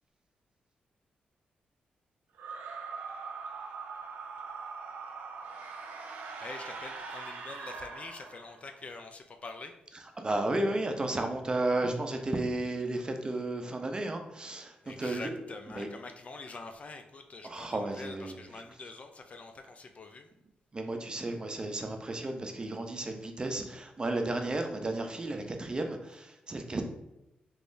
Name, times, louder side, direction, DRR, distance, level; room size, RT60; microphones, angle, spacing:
sound 1, 2.3-8.8, right 4 dB, 85° right, 0.5 m, -42 dB
voice 1, 6.4-9.7 14.8-20.3, left 3 dB, 45° left, 6 dB, 0.4 m, -45 dB
voice 2, 10.2-15.4 15.7-15.9 17.4-18.4 20.7-26.8, right 2 dB, 30° right, 4 dB, 0.5 m, -33 dB
3.4 x 3.1 x 2.6 m, 0.88 s
cardioid pair, 75°, 3 cm